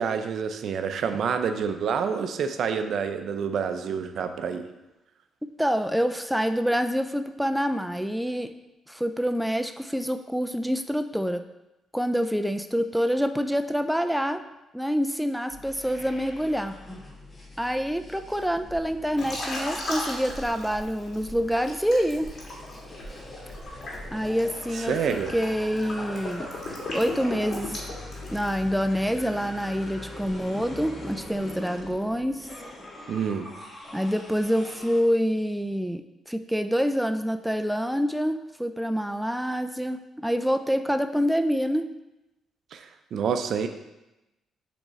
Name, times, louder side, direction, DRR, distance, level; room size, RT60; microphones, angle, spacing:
voice 1, 0.0-4.6 24.9-25.3 33.1-33.5 42.7-43.7, right 6 dB, 65° right, 8 dB, 0.5 m, -28 dB
voice 2, 5.6-8.5 8.9-11.4 11.9-14.4 14.7-16.8 17.6-22.3 24.1-26.5 26.9-27.8 28.3-32.5 33.9-41.9, equal, ahead, 8 dB, 0.3 m, -26 dB
sound 1, 15.5-35.0, left 1 dB, 25° left, 1.3 m, -42 dB
Liquid, 19.2-21.2 21.6-28.6, left 2 dB, 50° left, 2.0 m, -36 dB
7.1 x 3.6 x 4.1 m, 0.97 s
cardioid pair, 90°, 0 cm